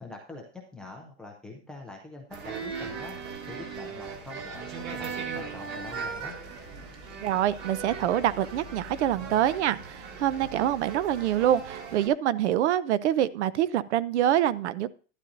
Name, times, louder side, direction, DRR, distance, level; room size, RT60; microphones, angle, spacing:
voice 1, 0.0-3.2 3.5-6.4, left 3 dB, 5° left, 0 dB, 0.4 m, -44 dB
sound 1, 2.3-12.1, right 5 dB, 30° right, 1.5 m, -38 dB
voice 2, 7.2-14.9, right 11 dB, 70° right, 18 dB, 0.7 m, -25 dB
11.5 x 11.0 x 2.6 m, 0.37 s
supercardioid pair, 170°, 36 cm